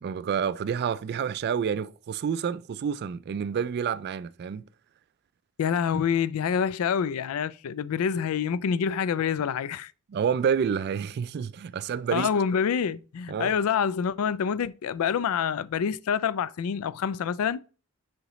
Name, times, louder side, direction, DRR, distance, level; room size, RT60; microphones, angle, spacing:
voice 1, 0.0-4.6 10.1-12.3 13.3-13.5, right 7 dB, 50° right, 0.3 m, -28 dB
voice 2, 5.6-9.9 12.1-17.6, left 7 dB, 75° left, 0.4 m, -27 dB
6.7 x 5.0 x 3.1 m
head